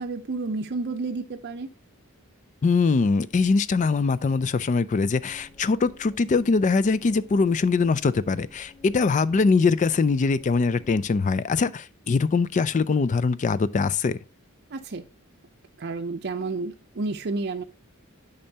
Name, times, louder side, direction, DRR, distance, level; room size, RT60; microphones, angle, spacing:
voice 1, 0.0-1.7 14.7-15.0 15.8-17.6, right 3 dB, 50° right, 0.5 m, -30 dB
voice 2, 2.6-14.2, left 4 dB, 35° left, 0.3 m, -22 dB
sound 1, 5.1-11.1, left 2 dB, 20° left, 2.7 m, -52 dB
8.7 x 5.5 x 2.8 m
head